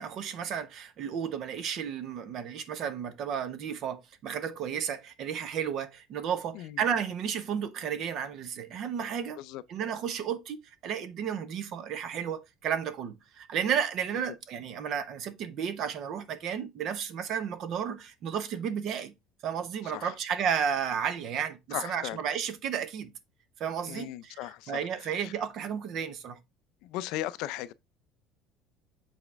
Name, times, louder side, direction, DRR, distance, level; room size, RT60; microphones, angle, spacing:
voice 1, 0.0-9.4 9.7-19.1 19.4-23.1 23.6-26.4, right 8 dB, 40° right, 0.7 m, -33 dB
voice 2, 21.7-22.2 23.8-24.9 25.2-25.3 26.8-27.7, left 15 dB, 60° left, 0.4 m, -37 dB
7.2 x 4.2 x 3.3 m
cardioid pair, 170°, 0 cm